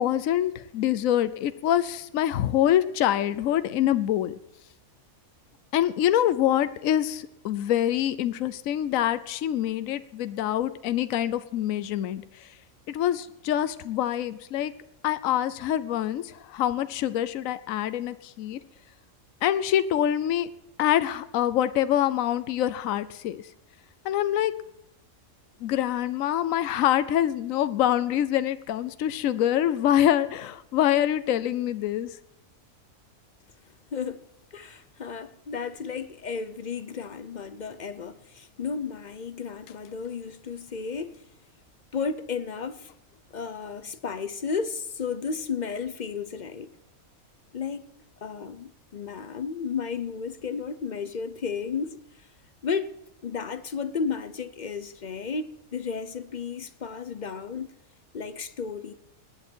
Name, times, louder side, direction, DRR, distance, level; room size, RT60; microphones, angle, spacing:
voice 1, 0.0-4.3 5.7-12.2 12.9-14.7 15.0-18.6 19.4-20.5 20.8-23.4 24.0-24.5 25.6-32.1, left 11 dB, 75° left, 1.1 m, -25 dB
voice 2, 33.9-41.2 41.9-42.9 43.3-46.7 47.5-47.9 48.2-52.3 52.6-52.9 53.2-57.7 58.1-58.9, left 5 dB, 45° left, 0.6 m, -33 dB
19.5 x 9.0 x 4.5 m
omnidirectional pair, 1.4 m